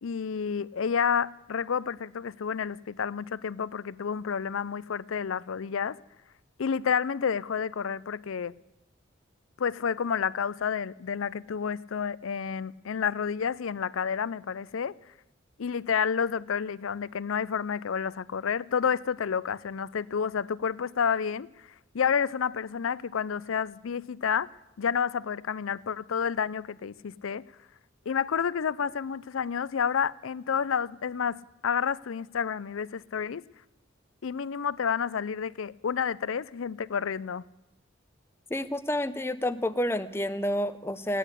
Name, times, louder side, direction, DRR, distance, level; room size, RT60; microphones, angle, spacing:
voice 1, 0.0-6.0 6.6-8.5 9.6-14.9 15.6-21.5 21.9-24.5 24.8-27.4 28.1-33.4 34.2-37.4, left 7 dB, 85° left, 0.5 m, -30 dB
voice 2, 38.5-41.2, left 1 dB, 10° left, 0.6 m, -29 dB
17.0 x 10.0 x 8.3 m
head